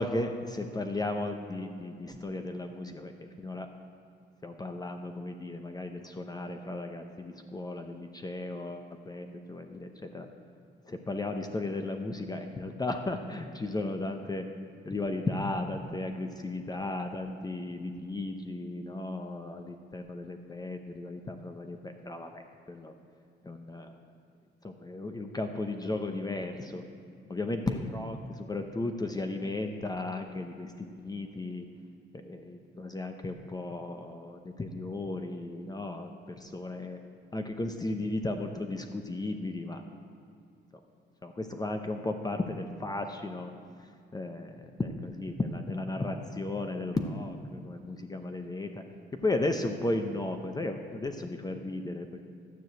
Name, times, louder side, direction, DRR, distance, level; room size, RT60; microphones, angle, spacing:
voice 1, 0.0-3.1 3.4-3.7 4.4-10.3 10.9-14.5 14.9-22.4 22.7-22.9 23.4-23.9 24.6-26.8 27.3-31.6 32.1-36.1 36.4-37.0 37.3-39.8 41.2-43.5 43.8-48.8 49.2-52.3, left 2 dB, 20° left, 5 dB, 0.7 m, -35 dB
12.0 x 4.9 x 7.7 m, 2.4 s
cardioid pair, 90°, 20 cm